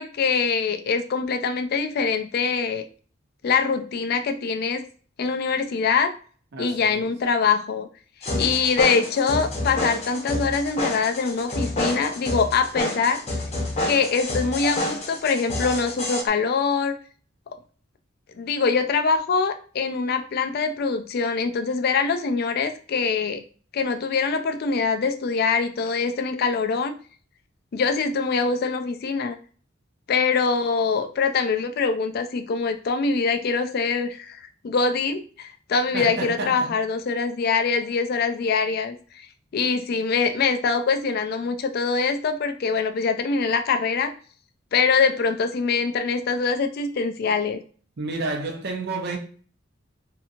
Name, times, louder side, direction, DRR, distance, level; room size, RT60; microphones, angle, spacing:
voice 1, 0.0-2.8 3.4-4.8 5.2-6.1 6.6-7.9 8.3-13.2 13.9-17.0 18.3-23.4 23.7-26.9 27.7-29.4 30.1-39.3 39.5-44.1 44.7-47.6, left 5 dB, 50° left, 0.3 m, -24 dB
voice 2, 6.5-7.1 35.9-36.7 48.0-49.2, right 3 dB, 55° right, 0.6 m, -30 dB
sound 1, 8.2-16.2, left 1 dB, 30° left, 0.8 m, -28 dB
2.8 x 2.6 x 2.4 m
head